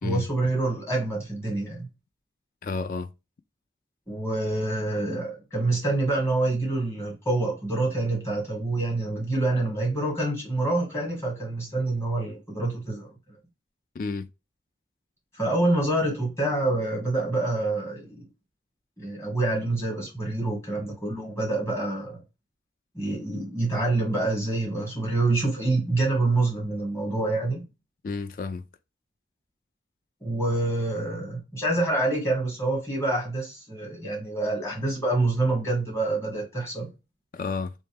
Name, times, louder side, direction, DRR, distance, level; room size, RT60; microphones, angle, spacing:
voice 1, 0.0-1.9 4.1-13.4 15.3-18.2 19.0-22.2 22.9-27.6 30.2-36.9, right 2 dB, 15° left, 1.9 m, -26 dB
voice 2, 2.6-3.1 14.0-14.3 28.0-28.6 37.3-37.7, left 4 dB, 50° left, 0.4 m, -31 dB
3.3 x 3.1 x 3.3 m
head